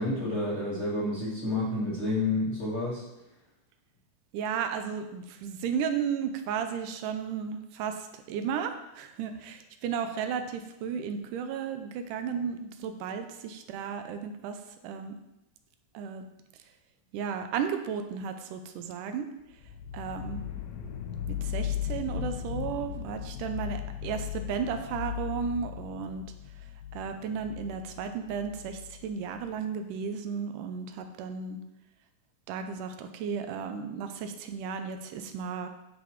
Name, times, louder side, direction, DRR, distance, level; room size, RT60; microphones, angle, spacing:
voice 1, 0.0-3.0, left 2 dB, 25° left, -8 dB, 2.0 m, -29 dB
voice 2, 4.3-15.2 15.9-16.3 17.1-19.3 19.9-20.4 21.3-26.2 26.9-31.6 32.5-35.7, right 7 dB, 80° right, 7 dB, 2.1 m, -34 dB
sound 1, 19.6-29.5, left 11 dB, 85° left, 2.4 m, -37 dB
10.0 x 5.1 x 3.0 m, 0.90 s
omnidirectional pair, 3.8 m